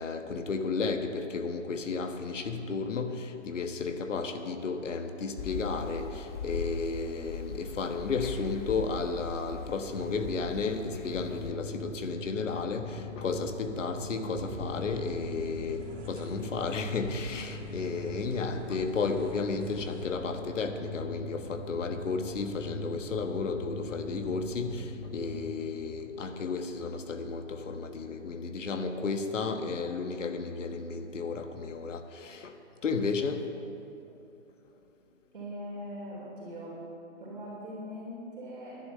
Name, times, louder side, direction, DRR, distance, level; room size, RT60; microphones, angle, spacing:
voice 1, 0.0-33.5, left 4 dB, 80° left, 6 dB, 1.4 m, -33 dB
sound 1, 5.4-11.5, left 4 dB, 40° left, 1.2 m, -40 dB
sound 2, 9.9-25.6, left 2 dB, 55° left, 1.5 m, -42 dB
sound 3, 14.4-20.1, right 3 dB, 80° right, 2.8 m, -46 dB
voice 2, 35.3-36.8 37.2-38.9, equal, 45° right, -6 dB, 3.5 m, -41 dB
11.5 x 10.5 x 6.6 m, 2.7 s
hypercardioid pair, 175°, 37 cm